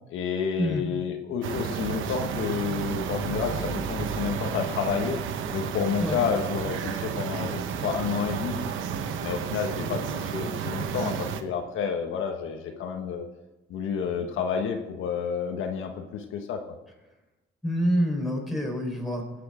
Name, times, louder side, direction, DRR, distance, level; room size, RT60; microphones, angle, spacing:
voice 1, 0.1-5.2 5.5-8.6 9.2-13.3 13.7-16.6, left 6 dB, 85° left, 4 dB, 1.4 m, -30 dB
sound 1, 1.4-11.4, right 7 dB, 85° right, 0.9 m, -31 dB
voice 2, 17.6-19.3, equal, ahead, 0 dB, 4.3 m, -27 dB
18.0 x 8.4 x 5.1 m, 1.0 s
cardioid pair, 90°, 20 cm